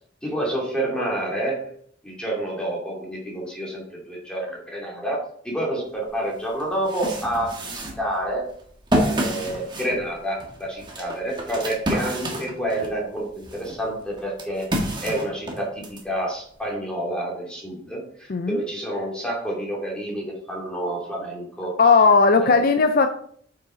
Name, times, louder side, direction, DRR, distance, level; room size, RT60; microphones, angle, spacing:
voice 1, 0.2-1.6 2.0-5.2 5.4-8.5 9.0-21.7 22.4-22.7, right 1 dB, 5° left, -3 dB, 2.6 m, -29 dB
sound 1, 6.1-6.2 6.6-13.0 13.4-16.0, right 1 dB, 25° right, 1.5 m, -29 dB
voice 2, 18.3-18.6 21.8-23.1, left 4 dB, 50° left, 8 dB, 0.5 m, -16 dB
8.8 x 5.8 x 3.9 m, 0.63 s
head